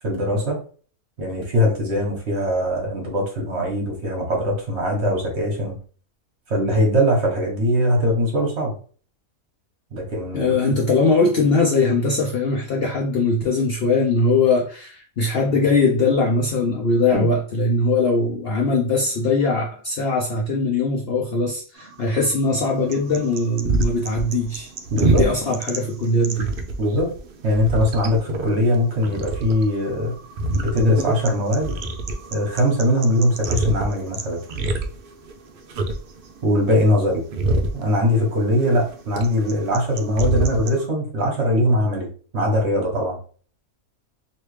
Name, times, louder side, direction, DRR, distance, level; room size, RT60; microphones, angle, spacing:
voice 1, 0.0-0.6 1.2-5.8 6.5-8.8 9.9-10.5 17.1-17.3 24.9-25.2 26.8-27.1 27.4-30.1 30.5-31.7 32.3-34.4 36.4-37.2 37.7-42.1 42.3-43.2, equal, 55° right, 0 dB, 1.3 m, -21 dB
voice 2, 10.3-24.7 25.0-26.5, left 3 dB, 60° left, 0 dB, 0.6 m, -21 dB
sound 1, 21.8-40.9, right 2 dB, 70° right, 0.5 m, -28 dB
3.1 x 2.8 x 3.1 m, 0.42 s
omnidirectional pair, 1.5 m